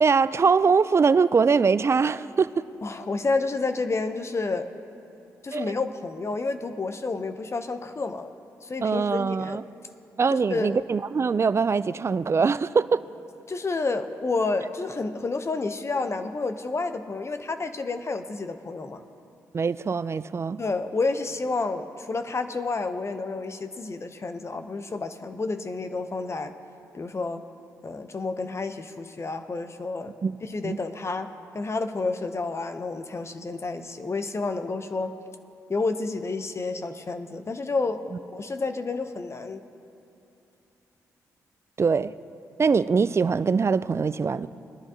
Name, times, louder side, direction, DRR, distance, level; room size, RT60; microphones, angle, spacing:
voice 1, 0.0-2.7 5.5-5.7 8.8-9.6 10.2-13.0 19.5-20.6 30.2-30.4 30.6-30.8 41.8-42.1 42.6-44.5, right 5 dB, 40° right, 0.4 m, -22 dB
voice 2, 2.8-4.7 5.4-8.3 8.6-9.6 10.3-10.8 13.5-19.0 20.6-26.5 26.9-27.4 27.8-30.1 30.4-35.1 35.7-38.0 38.3-39.6, left 3 dB, 40° left, 0.7 m, -30 dB
21.5 x 10.5 x 2.8 m
supercardioid pair, 45°, 7 cm